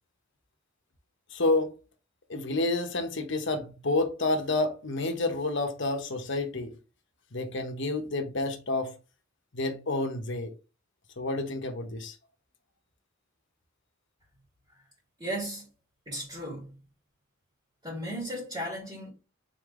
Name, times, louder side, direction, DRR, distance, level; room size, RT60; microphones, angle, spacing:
voice 1, 1.3-1.7 2.3-6.7 7.3-8.9 9.5-10.5 11.2-12.2, left 2 dB, 60° left, 1.0 m, -29 dB
voice 2, 15.2-15.7 16.1-16.8 17.8-19.1, equal, 20° right, 2.1 m, -35 dB
4.2 x 3.9 x 3.1 m
head